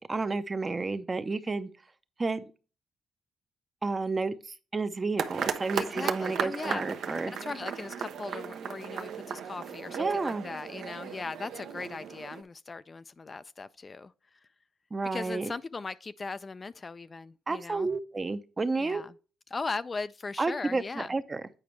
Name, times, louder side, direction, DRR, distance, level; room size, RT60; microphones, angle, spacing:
voice 1, 0.1-1.7 2.2-2.4 3.8-4.4 4.7-7.3 10.0-10.4 14.9-15.5 17.5-19.0 20.4-21.4, right 3 dB, 25° right, 0.7 m, -31 dB
sound 1, 5.2-12.4, right 7 dB, 70° right, 0.7 m, -36 dB
voice 2, 5.7-6.8 7.4-14.1 15.1-17.9 18.8-19.1 19.5-21.1, left 4 dB, 30° left, 0.3 m, -38 dB
8.6 x 5.0 x 3.2 m
cardioid pair, 90°, 0 cm